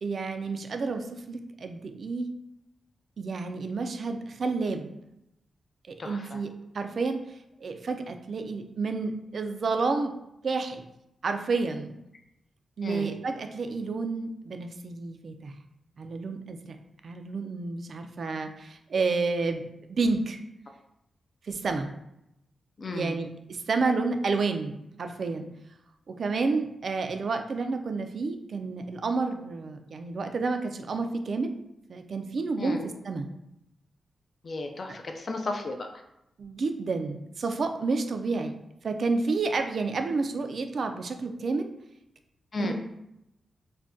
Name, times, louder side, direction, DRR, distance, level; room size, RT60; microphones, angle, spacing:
voice 1, 0.0-2.3 3.2-4.9 5.9-6.5 6.7-10.1 10.4-10.9 11.2-11.9 12.8-15.5 16.0-16.8 17.0-19.6 19.9-20.4 21.4-21.9 22.9-25.5 26.1-31.5 31.9-32.8 33.0-33.3 36.4-38.5 38.8-41.7 42.6-42.7, right 4 dB, 55° right, 6 dB, 0.3 m, -30 dB
voice 2, 6.0-6.4 12.8-13.1 22.8-23.2 32.6-32.8 34.4-35.9 42.5-42.7, left 3 dB, 45° left, 4 dB, 0.4 m, -34 dB
2.5 x 2.2 x 3.5 m, 0.84 s
wide cardioid pair, 110°, 0 cm